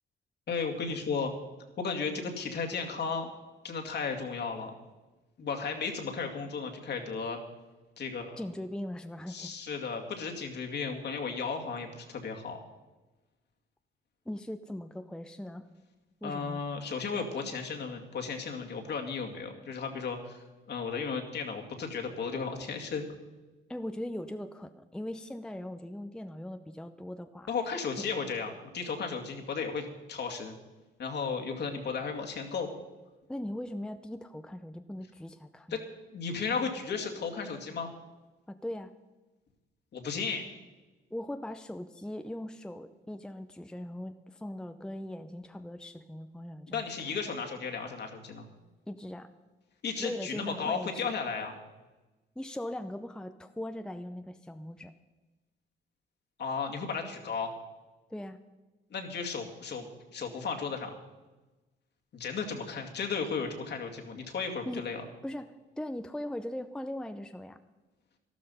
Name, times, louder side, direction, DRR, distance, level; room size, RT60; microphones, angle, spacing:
voice 1, 0.5-1.3 1.8-3.3 3.6-4.7 5.4-7.4 8.0-8.4 9.3-12.6 16.2-23.0 27.5-30.5 31.0-32.7 35.7-35.8 36.1-37.9 39.9-40.4 46.7-48.4 49.8-51.5 56.4-57.5 58.9-59.9 60.1-60.9 62.1-65.0, left 5 dB, 60° left, 2 dB, 2.3 m, -34 dB
voice 2, 8.4-9.5 14.3-15.7 16.2-16.6 23.7-27.5 28.0-28.1 33.3-35.8 38.5-38.9 41.1-46.9 48.9-49.3 50.0-51.1 52.4-54.9 58.1-58.4 64.7-64.8 65.2-65.5 65.8-67.6, left 1 dB, 5° left, 9 dB, 0.6 m, -39 dB
12.5 x 12.5 x 5.5 m, 1.2 s
cardioid pair, 90°, 20 cm